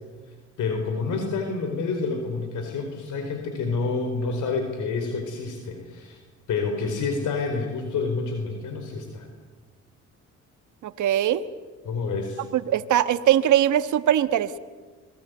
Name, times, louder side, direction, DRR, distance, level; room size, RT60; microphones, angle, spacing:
voice 1, 0.6-6.2 6.5-9.3 11.8-12.4, left 4 dB, 80° left, 5 dB, 4.6 m, -28 dB
voice 2, 10.8-11.4 12.5-14.6, right 11 dB, 75° right, 11 dB, 1.5 m, -21 dB
27.5 x 22.0 x 9.4 m, 1.3 s
cardioid pair, 90°, 30 cm